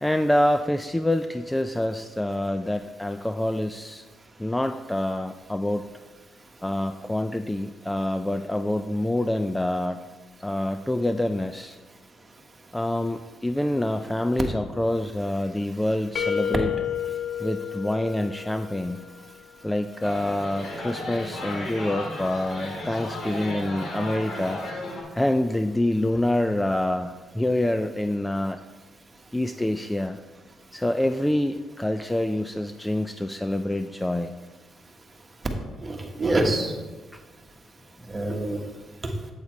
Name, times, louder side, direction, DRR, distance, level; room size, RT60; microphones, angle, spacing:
voice 1, 0.0-4.0 4.4-5.8 6.6-10.0 10.4-11.8 12.7-16.7 17.4-19.0 19.6-24.6 25.1-28.6 29.3-30.2 30.7-34.3 37.1-37.2, left 1 dB, 10° left, 8 dB, 0.4 m, -26 dB
sound 1, 16.2-19.0, left 9 dB, 45° left, 0.7 m, -30 dB
sound 2, 20.0-25.0, left 1 dB, 60° left, 2.3 m, -34 dB
voice 2, 35.8-36.7 38.1-38.6 39.0-39.1, right 2 dB, 25° right, 3 dB, 1.3 m, -26 dB
8.5 x 8.1 x 3.2 m, 1.3 s
cardioid pair, 90°, 0 cm